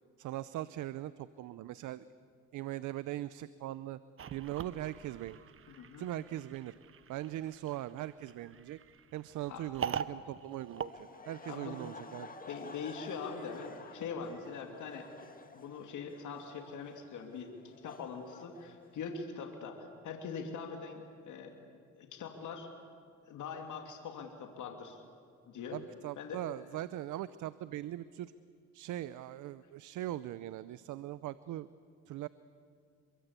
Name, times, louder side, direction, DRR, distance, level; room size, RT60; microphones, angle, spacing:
voice 1, 0.2-2.1 2.5-4.0 4.3-5.4 6.0-6.8 7.1-8.8 9.1-12.3 25.7-28.3 28.7-31.7 32.1-32.3, right 14 dB, 80° right, 16 dB, 0.7 m, -40 dB
sound 1, 4.2-11.9, right 7 dB, 45° right, 1.0 m, -43 dB
voice 2, 5.7-6.1 9.5-9.6 11.5-11.8 12.5-15.1 15.5-22.7 23.3-25.0 25.5-25.8 26.2-26.4, left 5 dB, 75° left, 4 dB, 2.7 m, -43 dB
Laughter, 10.7-19.2, left 4 dB, 30° left, 1.9 m, -52 dB
27.5 x 23.0 x 8.2 m, 2.2 s
cardioid pair, 90°, 30 cm